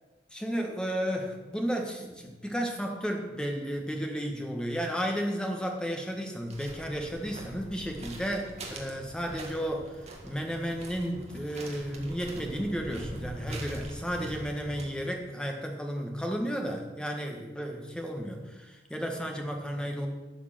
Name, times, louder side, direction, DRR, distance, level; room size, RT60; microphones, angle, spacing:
voice 1, 0.3-20.1, equal, 5° left, 2 dB, 1.5 m, -33 dB
sound 1, 6.5-14.9, right 1 dB, 35° right, 1.9 m, -43 dB
11.5 x 6.6 x 7.6 m, 1.2 s
head